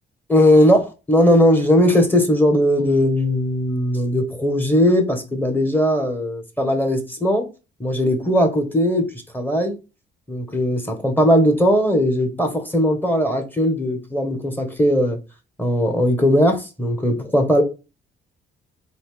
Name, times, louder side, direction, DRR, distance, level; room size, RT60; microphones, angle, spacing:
voice 1, 0.3-7.5 7.8-9.8 10.3-15.2 15.6-17.6, equal, 10° left, 1.4 m, -18 dB
4.1 x 2.9 x 3.6 m
cardioid pair, 90°, 20 cm